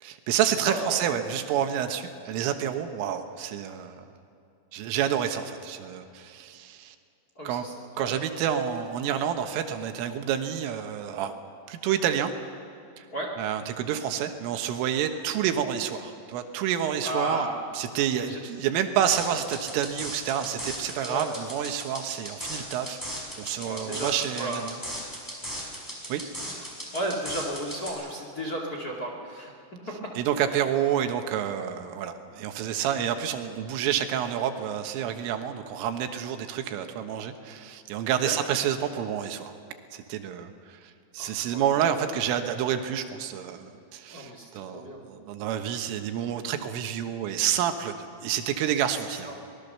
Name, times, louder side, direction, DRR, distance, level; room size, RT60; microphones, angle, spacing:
voice 1, 0.0-4.1 4.7-7.0 7.5-7.7 8.0-11.3 11.7-12.3 13.0-13.1 13.4-17.5 17.7-23.0 23.4-24.8 26.1-26.2 30.2-39.5 39.9-49.3, right 9 dB, 80° right, 6 dB, 3.8 m, -29 dB
voice 2, 0.6-1.0 7.3-8.1 13.1-13.3 17.0-17.6 18.2-18.4 21.0-21.3 23.7-24.1 24.3-24.6 26.7-29.5 38.2-38.3 41.2-41.8 44.1-45.0 49.1-49.3, right 1 dB, 40° left, 0 dB, 1.3 m, -34 dB
sound 1, 19.1-27.9, equal, 5° left, 4.8 m, -37 dB
24.5 x 20.5 x 6.8 m, 2.5 s
omnidirectional pair, 5.8 m